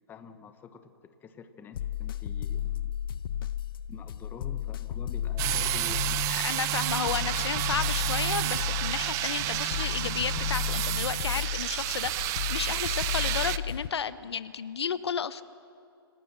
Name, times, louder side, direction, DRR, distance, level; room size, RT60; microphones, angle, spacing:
voice 1, 0.1-2.9 3.9-6.3 7.2-7.3, left 6 dB, 15° left, 9 dB, 1.1 m, -47 dB
sound 1, 1.7-13.9, left 10 dB, 60° left, 0.8 m, -34 dB
sound 2, 5.4-13.6, right 16 dB, 25° right, 0.5 m, -30 dB
voice 2, 6.3-15.4, left 7 dB, 85° left, 14 dB, 1.0 m, -33 dB
26.5 x 18.0 x 7.5 m, 2.5 s
hypercardioid pair, 145°, 13 cm